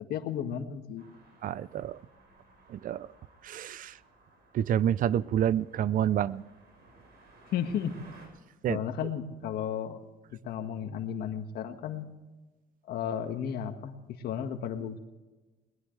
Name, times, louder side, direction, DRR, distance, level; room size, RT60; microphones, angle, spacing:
voice 1, 0.1-1.0 7.5-7.9 8.7-10.0 10.3-12.1 12.9-15.0, left 8 dB, 70° left, 6 dB, 1.8 m, -34 dB
sound 1, 1.0-8.3, right 2 dB, 75° right, 6.4 m, -58 dB
voice 2, 1.4-2.0 2.7-3.1 3.4-3.9 4.5-6.4 8.6-8.8, right 10 dB, 55° right, 19 dB, 0.6 m, -28 dB
21.5 x 20.0 x 3.3 m, 1.2 s
cardioid pair, 110°, 17 cm